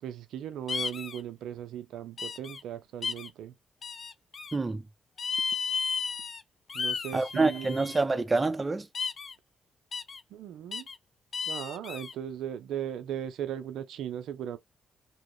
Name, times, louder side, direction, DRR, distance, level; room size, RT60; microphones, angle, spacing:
voice 1, 0.0-3.5 6.7-7.8 10.3-10.9 11.5-14.6, right 10 dB, 80° right, 0.6 m, -37 dB
sound 1, 0.7-1.2 2.2-2.6 3.0-3.3 3.8-4.6 5.2-6.4 6.7-8.0 8.9-9.3 9.9-10.2 10.7-11.0 11.3-12.1, left 5 dB, 55° left, 0.5 m, -34 dB
voice 2, 4.5-4.8 7.1-8.9, right 3 dB, 30° right, 0.8 m, -27 dB
3.1 x 2.9 x 3.1 m
supercardioid pair, 55°, 0 cm